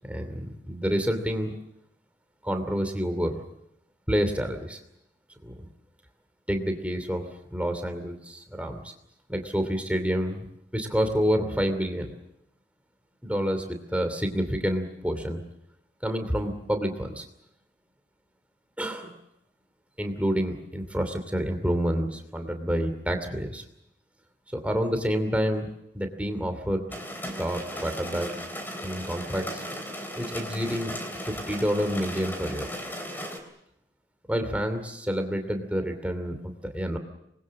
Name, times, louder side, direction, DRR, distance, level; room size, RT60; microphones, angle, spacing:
voice 1, 0.0-1.5 2.4-3.4 4.1-4.8 5.4-5.7 6.5-8.9 9.3-10.5 10.7-12.1 13.2-15.4 16.0-17.2 18.8-19.2 20.0-23.6 24.5-25.7 25.9-26.9 27.4-28.3 28.8-29.6 30.1-30.9 31.2-32.7 34.3-37.0, equal, 5° right, 6 dB, 2.7 m, -28 dB
sound 1, 26.9-33.4, equal, 10° left, 3.4 m, -36 dB
27.0 x 21.0 x 7.6 m, 0.81 s
head